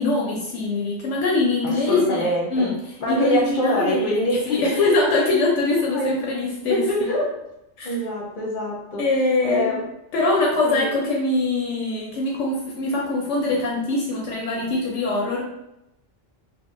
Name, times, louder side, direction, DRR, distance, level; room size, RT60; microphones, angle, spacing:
voice 1, 0.0-2.7 3.1-6.8 7.8-7.9 9.0-9.8 10.1-15.4, left 2 dB, 75° left, -2 dB, 0.9 m, -23 dB
voice 2, 1.6-2.7 3.0-4.9 5.9-6.1 6.7-7.4 7.8-9.1 9.4-9.8 10.6-10.9, equal, 45° left, -2 dB, 0.8 m, -24 dB
2.8 x 2.6 x 2.4 m, 0.86 s
omnidirectional pair, 1.3 m